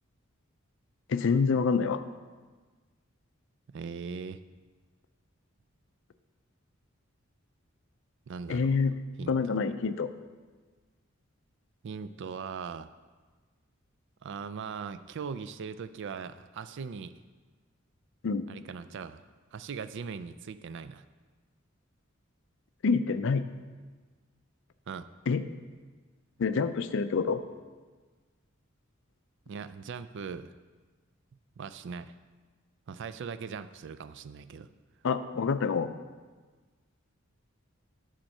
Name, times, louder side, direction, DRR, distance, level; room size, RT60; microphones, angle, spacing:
voice 1, 1.1-2.0 8.5-8.9 9.3-10.1 18.2-18.5 22.8-23.4 25.3-25.4 26.4-27.4 35.0-35.9, left 5 dB, 65° left, 11 dB, 0.4 m, -27 dB
voice 2, 3.7-4.4 8.3-8.8 9.2-9.6 11.8-12.9 14.2-17.2 18.5-19.2 19.5-21.0 24.9-25.1 29.5-30.5 31.6-32.1 32.9-34.7, right 6 dB, 60° right, 13 dB, 0.4 m, -40 dB
8.8 x 4.4 x 6.5 m, 1.4 s
head